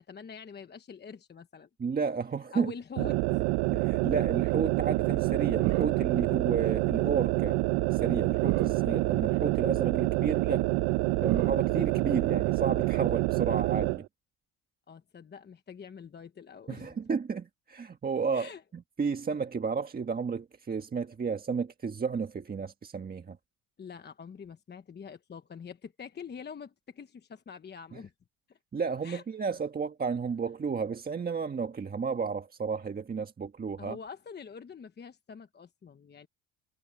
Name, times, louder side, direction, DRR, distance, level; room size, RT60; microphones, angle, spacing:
voice 1, 0.0-1.7 2.5-3.4 14.9-17.0 18.3-18.6 23.8-28.1 28.5-28.6 29.0-29.2 33.8-36.3, left 6 dB, 25° left, 1.1 m, -45 dB
voice 2, 1.8-2.7 3.7-7.6 7.9-10.7 11.2-14.1 16.7-23.4 27.9-28.0 28.7-34.0, right 5 dB, 20° right, 1.5 m, -32 dB
sound 1, 3.0-14.0, right 21 dB, 80° right, 1.0 m, -27 dB
cardioid pair, 125°, 40 cm